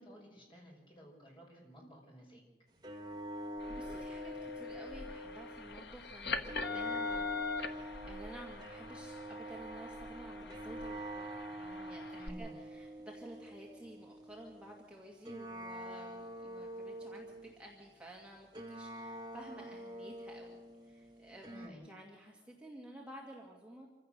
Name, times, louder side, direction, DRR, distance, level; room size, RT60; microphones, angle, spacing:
voice 1, 0.0-2.4 12.1-12.5 21.5-21.8, equal, 25° left, -1 dB, 5.8 m, -53 dB
sound 1, 2.8-5.8 6.4-14.8 15.2-17.7 18.5-21.7, equal, 20° right, 1.7 m, -45 dB
voice 2, 3.3-23.9, right 1 dB, 5° right, -2 dB, 2.0 m, -53 dB
sound 2, 3.6-12.3, left 4 dB, 65° left, 1.2 m, -43 dB
26.0 x 15.5 x 6.7 m, 1.3 s
head